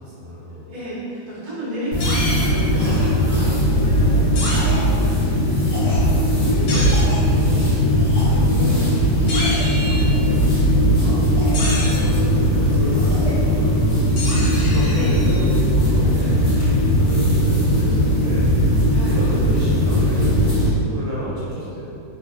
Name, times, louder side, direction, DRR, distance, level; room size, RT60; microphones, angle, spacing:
voice 1, 0.0-0.6 4.9-5.3 9.9-11.2 11.5-18.5 19.0-21.9, equal, 70° right, -8 dB, 1.3 m, -32 dB
voice 2, 0.7-5.0 5.6-10.0 14.9-15.5 18.9-19.2, equal, 40° right, -11 dB, 0.5 m, -32 dB
sound 1, 1.9-20.7, equal, 50° left, 1.2 m, -18 dB
sound 2, 2.0-2.4 4.3-4.6 6.7-7.0 9.3-10.2 11.5-12.1 14.2-15.5, left 2 dB, 75° left, 1.2 m, -28 dB
Cough, 2.7-3.1 3.3-3.6 4.4-4.8 5.5-6.0 6.8-7.2 7.9-8.4 9.1-9.7 10.1-10.4 11.3-12.3 12.8-13.4, left 1 dB, 35° left, 0.7 m, -35 dB
3.0 x 2.0 x 2.4 m, 2.6 s
omnidirectional pair, 2.0 m